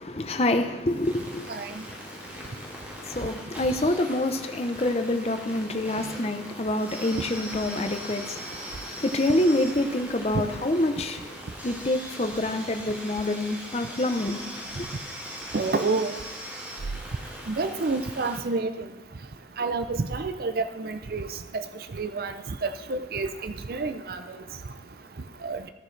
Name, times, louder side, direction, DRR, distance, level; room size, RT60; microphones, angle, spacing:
voice 1, 0.0-1.5 2.0-11.4 11.6-14.4 14.7-14.9, left 1 dB, 35° left, 0.7 m, -27 dB
sound 1, 0.9-18.4, equal, 10° right, 1.7 m, -40 dB
voice 2, 15.5-16.1 17.5-18.7 19.6-21.3 21.5-21.6 22.0-22.3 22.6-24.2 25.4-25.6, right 3 dB, 55° right, 0.5 m, -28 dB
14.0 x 10.0 x 3.3 m
head